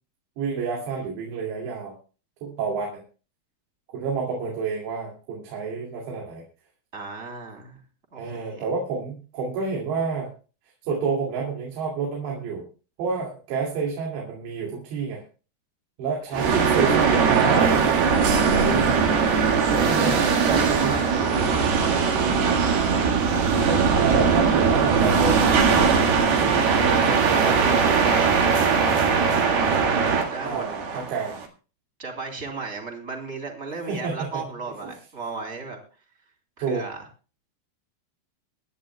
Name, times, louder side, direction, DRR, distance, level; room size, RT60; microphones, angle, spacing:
voice 1, 0.4-1.9 2.4-3.0 3.9-6.4 8.2-10.3 10.9-12.6 13.0-15.2 16.0-18.0 18.5-19.0 19.7-20.1 20.5-20.9 23.6-25.5 25.9-27.5 30.4-31.4 33.9-34.4 36.6-36.8, right 5 dB, 85° right, -2 dB, 4.7 m, -29 dB
voice 2, 6.9-7.8 8.1-8.7 16.3-16.5 19.7-22.7 26.6-28.9 29.2-29.6 30.3-30.7 30.9-31.0 32.0-35.8 36.6-37.0, right 4 dB, 20° right, 2 dB, 2.6 m, -35 dB
sound 1, 16.3-31.5, right 5 dB, 65° right, 3.5 m, -20 dB
25.0 x 10.5 x 2.3 m, 0.35 s
omnidirectional pair, 4.9 m